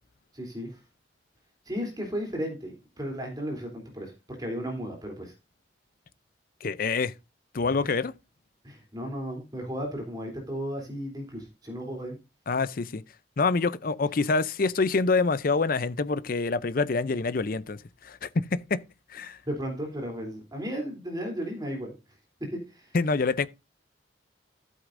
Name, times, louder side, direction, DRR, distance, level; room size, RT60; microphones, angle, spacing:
voice 1, 0.3-0.7 1.7-5.3 7.8-7.9 8.6-12.2 19.5-21.9 22.4-22.9, equal, 20° right, 3.2 m, -34 dB
voice 2, 6.6-7.1 7.5-8.1 12.5-13.0 13.4-17.8 18.0-18.8 19.1-19.4 22.9-23.5, left 4 dB, 50° left, 0.5 m, -26 dB
13.5 x 8.0 x 2.6 m
head